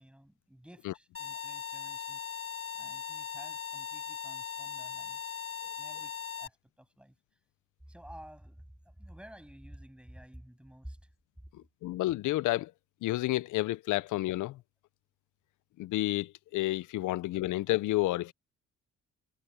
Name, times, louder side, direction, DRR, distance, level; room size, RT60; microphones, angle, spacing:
voice 1, 0.0-2.5 2.7-5.4 5.8-7.2 7.9-11.1, equal, 5° right, 7.5 m, -52 dB
sound 1, 1.1-6.5, left 8 dB, 50° left, 5.1 m, -39 dB
voice 2, 11.5-12.7 13.0-14.6 15.8-18.3, left 17 dB, 80° left, 0.6 m, -30 dB
cardioid pair, 90°, 30 cm